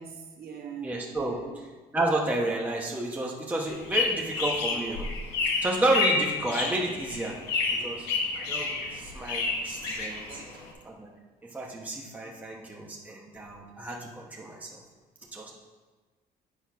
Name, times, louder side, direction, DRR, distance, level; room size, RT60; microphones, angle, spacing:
voice 1, 0.0-1.6 10.3-10.7, right 7 dB, 65° right, 1 dB, 1.5 m, -43 dB
voice 2, 0.8-1.4 1.9-5.1 5.6-7.4 7.8-8.1 8.3-10.3 10.8-11.1 11.5-14.8 15.3-15.6, right 2 dB, 10° right, -2 dB, 1.0 m, -31 dB
sound 1, 3.7-10.7, left 4 dB, 85° left, 1.4 m, -30 dB
8.3 x 4.4 x 5.7 m, 1.3 s
cardioid pair, 110°, 17 cm